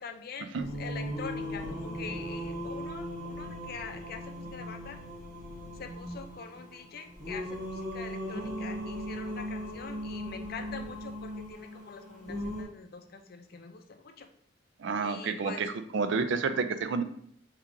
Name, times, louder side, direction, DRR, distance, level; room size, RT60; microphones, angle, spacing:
voice 1, 0.0-5.0 5.8-14.3 15.0-15.6, left 5 dB, 55° left, 6 dB, 0.5 m, -44 dB
Singing, 0.6-12.6, equal, 45° right, 1.4 m, -38 dB
voice 2, 14.8-17.0, right 4 dB, 65° right, 10 dB, 0.4 m, -30 dB
4.6 x 2.9 x 3.7 m, 0.66 s
head